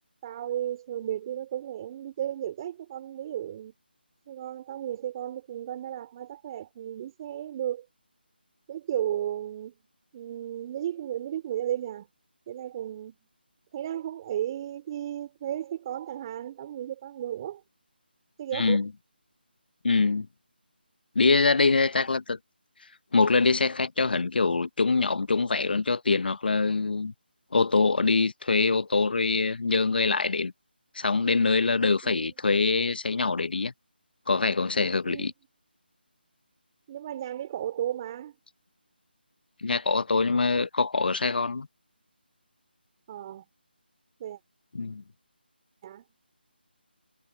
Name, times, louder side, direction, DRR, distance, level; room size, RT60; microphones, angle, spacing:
voice 1, 0.2-3.7 4.3-7.8 8.7-9.8 10.1-12.1 12.5-13.2 13.7-17.6 18.4-18.8 32.0-32.3 35.0-35.3 36.9-38.3 43.1-43.4 44.2-44.4 45.8-46.0, right 11 dB, 25° right, 3.5 m, -34 dB
voice 2, 18.5-18.9 19.8-20.3 21.1-22.4 23.1-27.1 27.5-30.5 30.9-33.7 34.3-35.3 39.6-41.7 44.7-45.0, left 4 dB, 60° left, 1.0 m, -24 dB
figure-of-eight pair, 160°, 6 cm